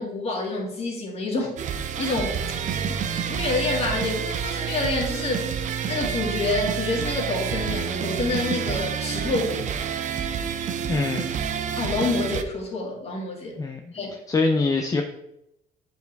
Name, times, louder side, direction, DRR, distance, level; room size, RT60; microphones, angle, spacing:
voice 1, 0.0-2.4 3.3-5.5 5.9-9.6 11.8-13.6 13.9-14.1, left 3 dB, 35° left, -2 dB, 2.2 m, -27 dB
sound 1, 1.6-12.4, right 8 dB, 45° right, 0.5 m, -28 dB
voice 2, 10.9-11.3 13.6-13.8 14.3-15.0, left 3 dB, 20° left, 3 dB, 0.5 m, -23 dB
7.9 x 4.6 x 3.4 m, 0.83 s
cardioid pair, 110°, 17 cm